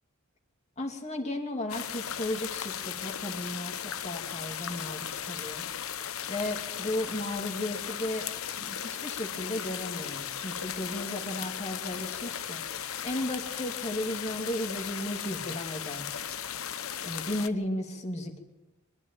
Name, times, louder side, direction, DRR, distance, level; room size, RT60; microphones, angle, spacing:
voice 1, 0.8-5.7 6.3-8.2 8.6-16.1 17.0-18.4, left 1 dB, 30° left, 2 dB, 2.5 m, -35 dB
sound 1, 1.7-17.5, left 9 dB, 85° left, 1.1 m, -36 dB
23.5 x 12.0 x 9.0 m, 0.99 s
head